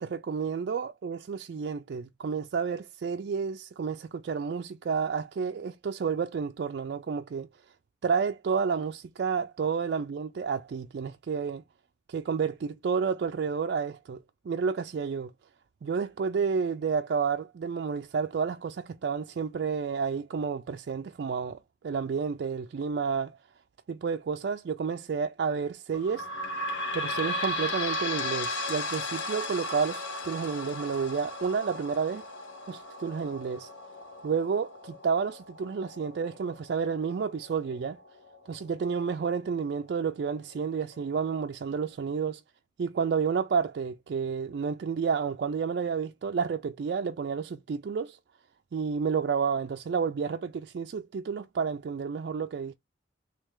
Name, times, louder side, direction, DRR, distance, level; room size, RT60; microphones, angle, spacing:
voice 1, 0.0-7.5 8.0-11.6 12.1-15.3 15.8-21.6 21.8-23.4 23.9-26.3 26.9-32.3 32.7-33.7 34.2-38.0 38.5-42.4 42.8-48.2 48.7-52.7, right 6 dB, 60° right, 0.3 m, -30 dB
sound 1, 25.9-39.1 39.7-39.8 40.0-40.1 40.9-41.0, left 1 dB, 85° left, 1.1 m, -36 dB
3.2 x 3.2 x 3.5 m
head